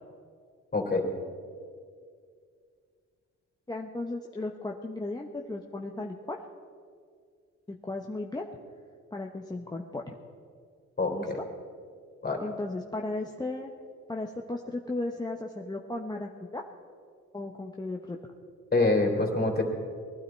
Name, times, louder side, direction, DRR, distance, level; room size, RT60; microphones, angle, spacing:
voice 1, 0.7-1.0 11.0-11.4 12.2-12.4 18.7-19.6, left 2 dB, 30° left, 1 dB, 3.3 m, -25 dB
voice 2, 3.7-6.4 7.7-8.5 9.1-10.1 11.1-11.4 12.4-13.7 14.1-16.6 17.3-18.2, left 2 dB, 15° left, 0 dB, 0.9 m, -35 dB
20.5 x 12.0 x 4.5 m, 2.1 s
cardioid pair, 90°, 30 cm